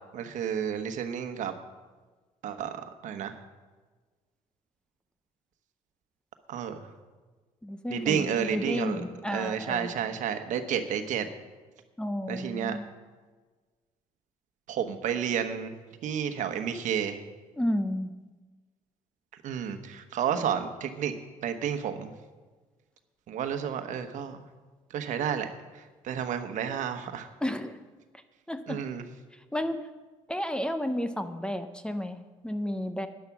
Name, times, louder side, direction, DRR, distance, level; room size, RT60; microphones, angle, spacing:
voice 1, 0.1-1.5 2.4-3.3 6.5-6.8 7.9-9.0 9.3-11.3 12.3-12.8 14.7-15.7 16.0-17.2 19.4-21.1 21.4-22.1 23.3-24.4 24.9-27.3 28.7-29.0, right 8 dB, 70° right, 7 dB, 1.2 m, -31 dB
voice 2, 7.6-9.9 12.0-12.9 17.6-18.1 27.4-27.8 28.5-28.8 29.3-29.9 30.3-33.1, equal, 5° left, 10 dB, 0.7 m, -32 dB
11.0 x 10.5 x 6.1 m, 1.3 s
cardioid pair, 105°, 13 cm